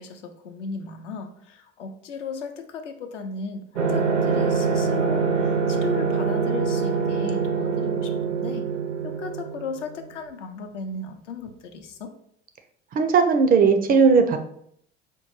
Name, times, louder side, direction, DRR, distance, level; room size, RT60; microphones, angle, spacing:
voice 1, 0.0-8.7 9.0-12.1, left 4 dB, 75° left, 6 dB, 0.6 m, -36 dB
sound 1, 3.8-10.1, right 5 dB, 85° right, 0.6 m, -24 dB
voice 2, 12.9-14.4, right 5 dB, 25° right, 6 dB, 0.4 m, -17 dB
5.2 x 2.2 x 3.0 m, 0.68 s
figure-of-eight pair, 70°, 36 cm